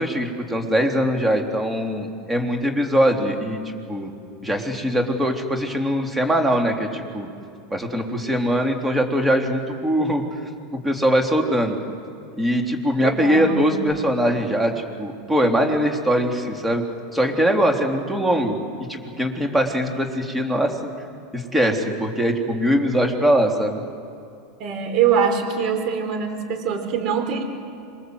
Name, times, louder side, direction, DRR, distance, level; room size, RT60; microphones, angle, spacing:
voice 1, 0.0-3.6 3.9-4.1 4.4-7.3 7.7-10.2 10.8-11.8 12.4-14.7 15.0-16.8 17.1-18.6 18.9-20.7 21.3-23.8, equal, 5° right, 3 dB, 3.4 m, -21 dB
voice 2, 13.0-13.7 24.6-27.4, right 7 dB, 45° right, 6 dB, 4.4 m, -23 dB
27.0 x 21.5 x 7.9 m, 2.6 s
supercardioid pair, 115°, 0 cm